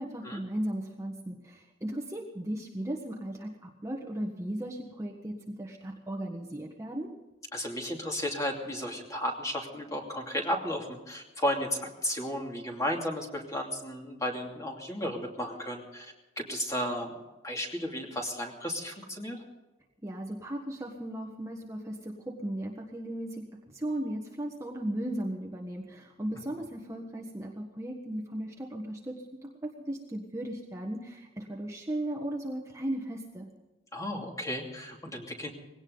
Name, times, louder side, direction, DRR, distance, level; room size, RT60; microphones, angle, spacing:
voice 1, 0.0-7.1 20.0-33.5, right 1 dB, 15° right, 0 dB, 1.4 m, -36 dB
voice 2, 7.5-17.1 17.4-19.4 33.9-35.5, equal, 15° left, 1 dB, 2.7 m, -34 dB
20.0 x 17.5 x 4.0 m, 1.1 s
head